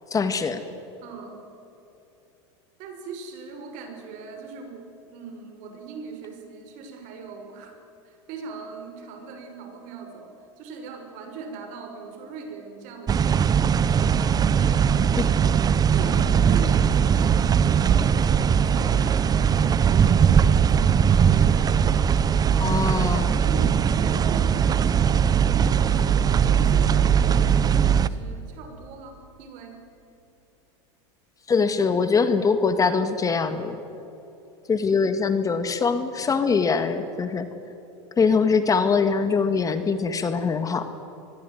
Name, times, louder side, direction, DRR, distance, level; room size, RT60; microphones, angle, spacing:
voice 1, 0.1-0.6 22.6-23.4 31.5-33.8 34.7-37.5 38.2-40.9, left 5 dB, 25° left, 9 dB, 1.9 m, -23 dB
voice 2, 1.0-1.4 2.8-7.8 8.0-18.1 18.5-22.9 23.3-25.2 25.5-29.8, right 4 dB, 55° right, 5 dB, 6.3 m, -40 dB
sound 1, 13.1-28.1, right 7 dB, 25° right, 1.0 m, -20 dB
26.0 x 21.0 x 9.5 m, 2.9 s
supercardioid pair, 115°, 15 cm